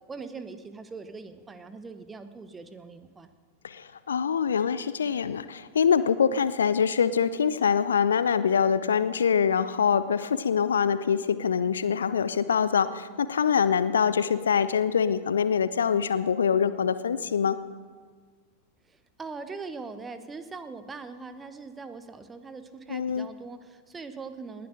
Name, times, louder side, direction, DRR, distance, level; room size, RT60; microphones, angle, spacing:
voice 1, 0.1-3.3 18.9-24.7, right 4 dB, 15° right, 10 dB, 1.1 m, -41 dB
voice 2, 3.6-17.6 22.9-23.3, left 7 dB, 70° left, 14 dB, 0.6 m, -24 dB
19.5 x 10.0 x 6.5 m, 1.5 s
figure-of-eight pair, 90°, 0 cm